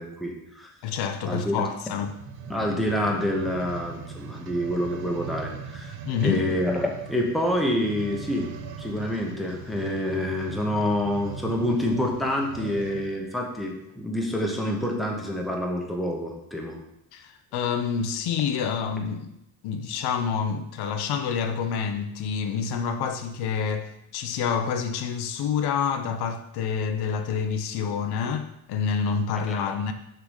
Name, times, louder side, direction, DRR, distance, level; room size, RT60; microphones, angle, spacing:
voice 1, 0.0-0.7 1.2-1.6 2.5-6.0 6.2-8.5 8.8-16.8 29.5-29.6, left 1 dB, ahead, 1.0 m, -27 dB
voice 2, 0.8-2.1 6.1-6.4 17.1-19.4 19.6-29.9, left 6 dB, 70° left, 0.8 m, -28 dB
sound 1, 2.0-13.2 13.9-14.0, right 6 dB, 65° right, 1.0 m, -40 dB
6.8 x 3.9 x 6.4 m
cardioid pair, 155°, 39 cm